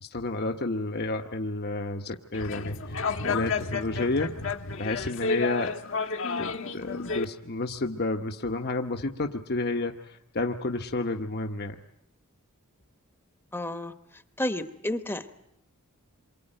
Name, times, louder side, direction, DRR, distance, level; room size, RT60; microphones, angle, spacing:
voice 1, 0.0-4.3 4.8-5.7 6.4-11.8, left 2 dB, 45° left, 5 dB, 1.0 m, -31 dB
sound 1, 2.3-7.2, left 4 dB, 65° left, 1.4 m, -31 dB
voice 2, 13.5-13.9 14.4-15.4, left 1 dB, 10° left, 9 dB, 1.0 m, -31 dB
27.5 x 24.0 x 9.0 m, 0.78 s
head